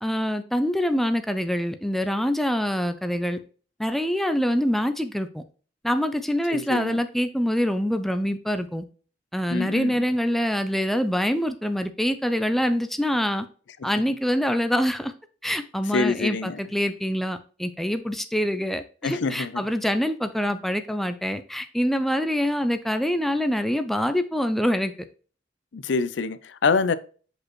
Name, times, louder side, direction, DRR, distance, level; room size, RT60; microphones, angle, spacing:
voice 1, 0.0-3.4 3.8-5.4 5.8-8.8 9.3-13.5 13.8-15.1 15.4-24.9, equal, ahead, 0.4 m, -25 dB
voice 2, 6.5-7.0 9.5-10.0 13.8-13.9 15.9-16.6 19.0-19.6 25.7-26.9, left 4 dB, 65° left, 0.5 m, -25 dB
6.2 x 5.1 x 3.0 m
head